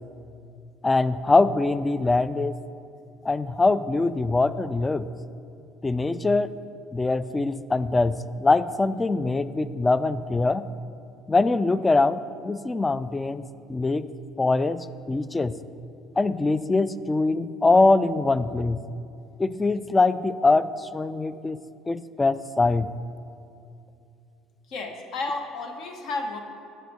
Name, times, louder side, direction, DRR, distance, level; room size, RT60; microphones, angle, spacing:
voice 1, 0.8-2.6 3.2-5.1 5.8-6.5 6.9-10.7 11.3-13.4 13.7-14.1 14.4-15.5 16.2-18.8 19.4-22.9, left 3 dB, 20° left, 15 dB, 0.3 m, -23 dB
voice 2, 24.7-26.4, left 3 dB, 65° left, 4 dB, 1.0 m, -32 dB
7.5 x 5.5 x 5.2 m, 2.6 s
hypercardioid pair, 70°, 0 cm